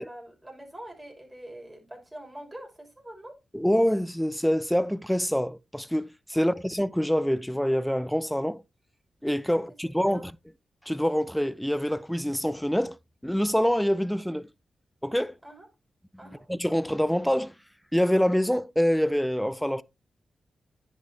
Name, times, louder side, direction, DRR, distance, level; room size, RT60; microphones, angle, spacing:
voice 1, 0.0-3.3 6.3-6.6 9.8-10.3 15.4-15.7 16.2-16.5, right 1 dB, 20° right, 6.2 m, -45 dB
voice 2, 3.5-8.6 9.2-10.3 10.9-13.0 13.2-14.5 15.0-15.3 16.5-17.5 17.9-19.8, equal, 5° left, 0.5 m, -25 dB
10.0 x 7.3 x 2.9 m
supercardioid pair, 45°, 0 cm